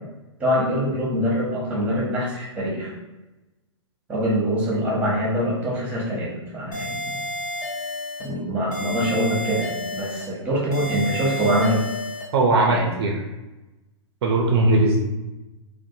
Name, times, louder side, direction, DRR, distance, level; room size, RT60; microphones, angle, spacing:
voice 1, 0.4-2.9 4.1-7.2 8.2-11.8 12.7-12.9, equal, 10° right, -5 dB, 1.0 m, -24 dB
sound 1, 6.7-8.3 8.7-10.3 10.7-12.3, left 1 dB, 30° left, 0.8 m, -31 dB
voice 2, 12.3-13.2 14.2-15.0, right 2 dB, 55° right, 0 dB, 0.4 m, -19 dB
2.5 x 2.1 x 2.6 m, 1.0 s
hypercardioid pair, 120°, 16 cm